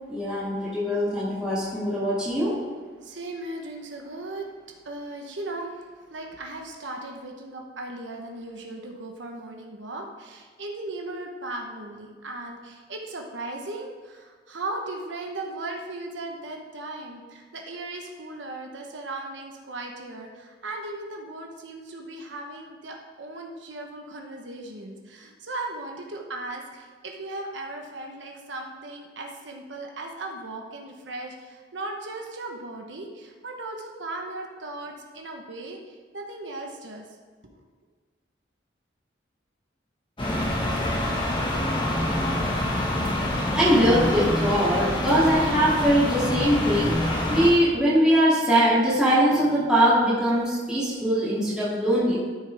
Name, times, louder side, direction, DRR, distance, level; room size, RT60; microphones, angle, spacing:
voice 1, 0.1-2.6 43.5-52.2, equal, 5° right, -11 dB, 2.6 m, -22 dB
voice 2, 3.0-4.5 4.8-5.8 6.1-37.1 37.5-37.6, right 2 dB, 90° right, 1 dB, 1.1 m, -37 dB
sound 1, 40.2-47.5, left 1 dB, 25° left, 1.6 m, -26 dB
12.5 x 6.6 x 3.5 m, 1.5 s
head